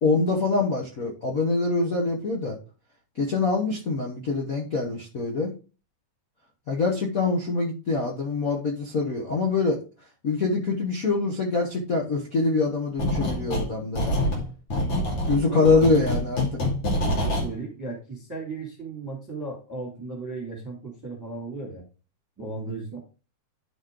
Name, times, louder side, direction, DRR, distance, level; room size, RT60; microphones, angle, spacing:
voice 1, 0.0-2.6 3.1-5.5 6.7-9.8 10.2-14.2 15.2-16.6, left 3 dB, 70° left, -1 dB, 0.8 m, -24 dB
sound 1, 13.0-13.7 14.0-17.5, left 1 dB, 50° left, 3.3 m, -26 dB
voice 2, 15.5-15.8 17.0-21.8 22.4-23.0, right 3 dB, 5° right, -1 dB, 1.9 m, -36 dB
10.5 x 4.2 x 3.7 m, 0.34 s
omnidirectional pair, 3.5 m